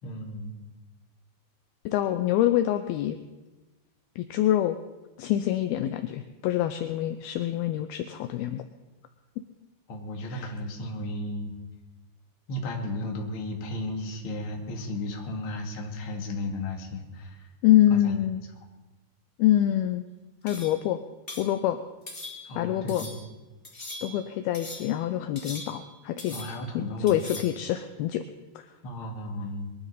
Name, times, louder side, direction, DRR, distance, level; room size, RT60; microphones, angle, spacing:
voice 1, 0.0-0.5 9.9-11.6 12.5-17.5 17.9-18.1 22.4-23.2 26.3-27.2 28.8-29.7, left 1 dB, 40° left, 1 dB, 2.2 m, -34 dB
voice 2, 1.9-3.2 4.2-4.8 5.2-8.6 10.3-10.5 17.6-18.4 19.4-20.0 20.4-21.0 21.4-21.8 22.6-23.0 24.0-26.4 26.7-28.2 28.6-28.7, left 12 dB, 80° left, 9 dB, 2.2 m, -25 dB
sound 1, 20.5-20.8 21.3-21.5 22.1-22.6 22.9-23.3 23.6-24.2 24.5-25.0 25.3-25.9 26.2-26.7 27.1-27.6, left 2 dB, 20° left, 1.6 m, -41 dB
22.5 x 13.0 x 4.2 m, 1.2 s
omnidirectional pair, 5.1 m